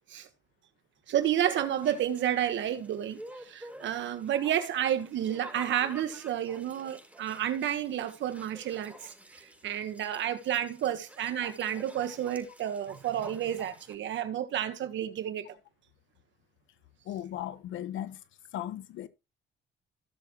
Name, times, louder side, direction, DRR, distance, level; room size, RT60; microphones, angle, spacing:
voice 1, 1.1-15.5, right 10 dB, 70° right, 1.5 m, -31 dB
sound 1, 1.2-13.9, right 1 dB, 5° right, 4.7 m, -50 dB
voice 2, 17.0-18.2 18.5-19.1, left 11 dB, 80° left, 1.3 m, -37 dB
15.5 x 7.0 x 3.1 m
cardioid pair, 85°, 20 cm